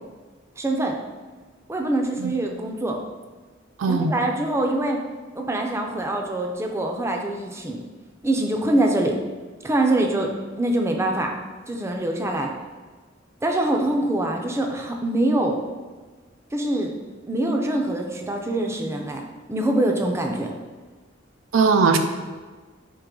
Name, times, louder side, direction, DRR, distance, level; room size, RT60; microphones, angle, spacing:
voice 1, 0.6-1.0 1.7-3.0 3.9-5.0 5.3-7.8 8.2-9.2 9.6-10.3 10.6-11.3 11.7-12.5 13.4-15.6 16.5-16.9 17.3-20.5, right 1 dB, 15° right, 2 dB, 0.4 m, -24 dB
voice 2, 3.8-4.1 21.5-22.0, right 4 dB, 85° right, 7 dB, 0.4 m, -19 dB
4.8 x 2.9 x 3.7 m, 1.4 s
head